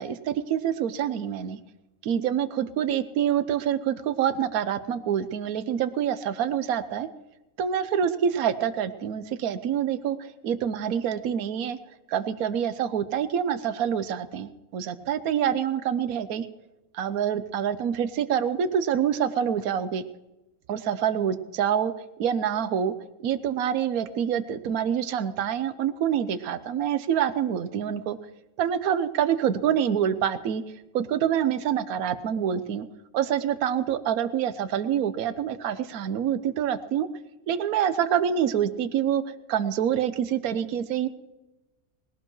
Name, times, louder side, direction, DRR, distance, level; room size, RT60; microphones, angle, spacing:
voice 1, 0.0-1.6 2.0-7.1 7.6-11.8 12.1-16.5 16.9-20.0 20.7-21.9 22.2-22.9 23.2-28.2 28.6-30.6 30.9-32.9 33.1-37.1 37.5-39.2 39.5-41.1, right 9 dB, 80° right, 12 dB, 1.2 m, -26 dB
21.0 x 17.5 x 3.1 m, 1.0 s
omnidirectional pair, 1.5 m